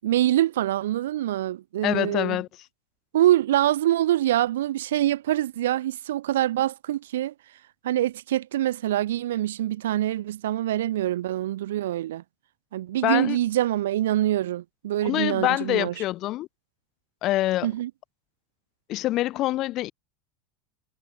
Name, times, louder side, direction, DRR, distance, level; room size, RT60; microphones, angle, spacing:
voice 1, 0.0-2.4 3.1-7.3 7.8-12.2 12.7-15.9 17.6-17.9, right 13 dB, 75° right, 7.6 m, -25 dB
voice 2, 1.8-2.5 13.0-13.4 15.0-16.5 17.2-17.7 18.9-19.9, left 16 dB, 50° left, 3.6 m, -25 dB
hypercardioid pair, 80°, 0 cm